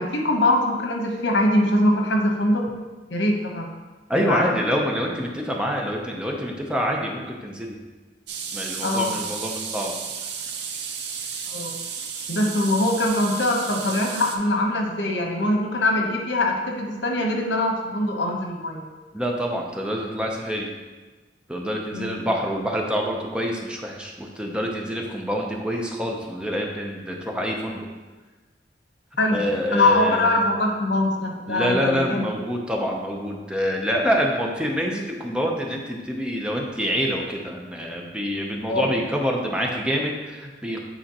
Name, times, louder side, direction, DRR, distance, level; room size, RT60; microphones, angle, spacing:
voice 1, 0.0-2.7 3.1-3.7 4.1-4.4 8.8-9.2 11.5-11.7 12.3-18.9 21.9-22.2 29.2-29.4 29.7-32.3 38.7-38.9, left 1 dB, 85° left, 1 dB, 1.0 m, -22 dB
voice 2, 4.1-7.8 8.5-9.9 19.1-20.7 21.5-27.9 29.3-30.4 31.5-40.8, equal, 5° right, 0 dB, 0.7 m, -26 dB
sound 1, 8.3-14.4, right 6 dB, 70° right, 0.6 m, -33 dB
8.9 x 4.2 x 2.9 m, 1.3 s
head